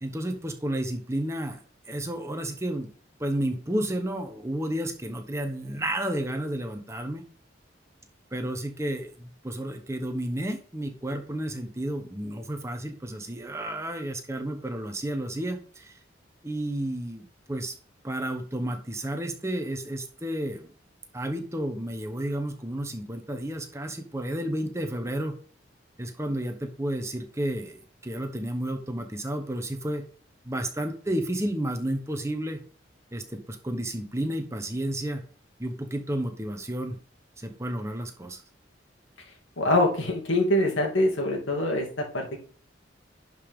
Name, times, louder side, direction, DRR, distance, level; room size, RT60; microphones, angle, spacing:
voice 1, 0.0-2.9 3.2-7.2 8.3-16.0 16.4-17.7 18.0-20.7 21.1-25.3 26.0-30.0 30.4-32.6 33.1-35.2 35.6-37.0 37.4-38.4, right 1 dB, 15° right, 6 dB, 1.0 m, -31 dB
voice 2, 39.6-42.4, left 1 dB, 85° left, 1 dB, 2.5 m, -24 dB
11.0 x 5.1 x 3.7 m, 0.43 s
head